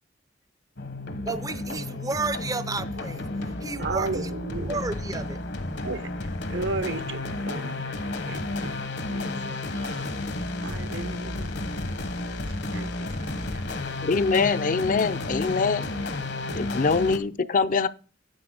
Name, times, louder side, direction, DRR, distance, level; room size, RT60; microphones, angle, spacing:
sound 1, 0.8-17.2, left 2 dB, 65° left, 1.1 m, -32 dB
voice 1, 1.2-3.3 3.6-4.3 4.7-5.4, right 3 dB, 20° right, 0.5 m, -32 dB
voice 2, 3.8-4.8 5.7-6.1 6.5-7.9 8.3-8.8 9.1-10.2 10.6-11.5 12.7-13.7 15.8-15.9, right 3 dB, 75° right, 1.0 m, -35 dB
voice 3, 14.0-15.9 16.5-17.9, left 4 dB, 45° left, 0.5 m, -24 dB
10.5 x 7.8 x 3.8 m
head